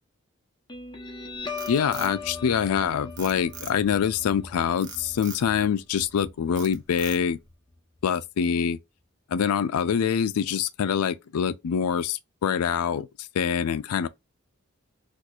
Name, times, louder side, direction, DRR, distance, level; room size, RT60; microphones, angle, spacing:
Guitar, 0.7-7.7, left 4 dB, 20° left, 0.7 m, -40 dB
Frog, 1.3-2.8 3.2-4.0 4.8-5.5 6.0-6.2 6.6-7.5, right 7 dB, 55° right, 0.8 m, -42 dB
voice 1, 1.7-7.4 8.0-8.8 9.3-13.1 13.3-14.1, left 7 dB, 85° left, 0.4 m, -25 dB
4.2 x 2.5 x 2.3 m
head